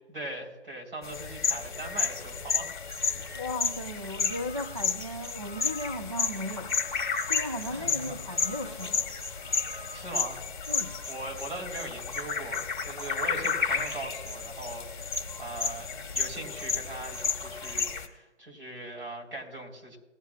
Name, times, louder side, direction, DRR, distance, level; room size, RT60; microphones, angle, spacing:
voice 1, 0.1-2.8 7.7-8.2 9.9-10.4 11.1-20.0, right 2 dB, 45° right, -2 dB, 3.8 m, -40 dB
sound 1, 1.0-18.1, left 5 dB, 40° left, 1.3 m, -32 dB
voice 2, 3.3-9.1 10.7-10.9, left 1 dB, 30° right, 2 dB, 0.4 m, -36 dB
19.5 x 10.5 x 2.4 m, 1.1 s
hypercardioid pair, 165°, 35 cm